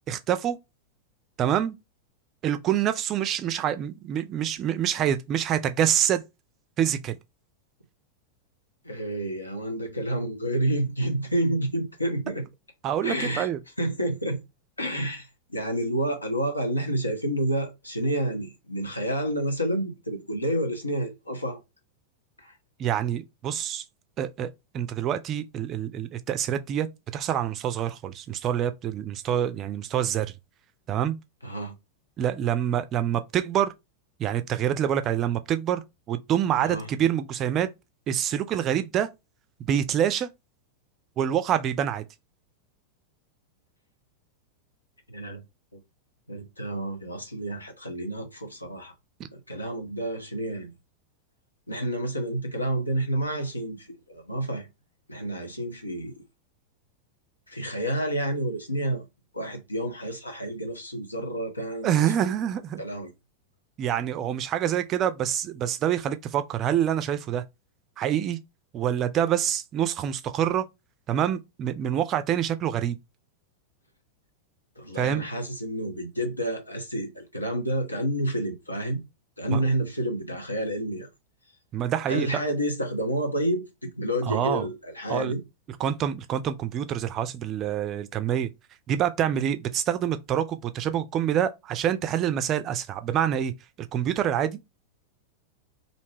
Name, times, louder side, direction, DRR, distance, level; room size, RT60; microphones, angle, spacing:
voice 1, 0.1-0.6 1.4-1.8 2.4-6.2 6.8-7.2 12.8-13.6 22.8-23.8 24.2-26.9 27.1-30.3 30.9-31.2 32.2-33.7 34.2-37.7 38.1-39.1 39.6-40.3 41.2-42.0 49.2-49.3 61.8-62.8 63.8-67.4 68.0-68.4 68.7-70.6 71.1-73.0 75.0-75.2 79.5-79.6 81.7-82.4 84.3-84.6 85.1-85.3 85.8-88.5 88.9-93.5 93.9-94.6, right 10 dB, 30° right, 0.3 m, -26 dB
voice 2, 8.8-12.5 13.0-13.5 13.8-14.4 14.8-21.6 22.4-22.5 31.4-31.7 36.6-36.9 45.1-45.4 45.7-45.8 46.3-48.9 49.3-50.7 51.7-54.7 55.1-56.1 57.5-59.1 59.3-62.3 62.8-63.1 74.8-79.0 79.4-81.1 82.1-85.4, right 1 dB, 85° left, 0.7 m, -29 dB
2.6 x 2.1 x 3.2 m
figure-of-eight pair, 90°, 0 cm